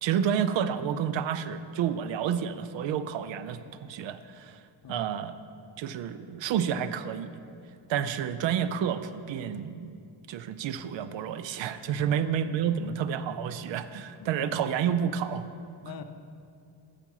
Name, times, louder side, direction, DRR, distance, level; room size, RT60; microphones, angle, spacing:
voice 1, 0.0-4.6 4.9-5.3 5.8-7.4 7.9-10.0 10.3-15.4, right 8 dB, 70° right, 13 dB, 0.5 m, -30 dB
voice 2, 11.9-12.3 12.7-12.8 13.3-13.4 14.2-14.3 15.8-16.0, left 7 dB, 50° left, 7 dB, 0.6 m, -44 dB
7.3 x 6.8 x 5.5 m, 2.5 s
cardioid pair, 120°, 47 cm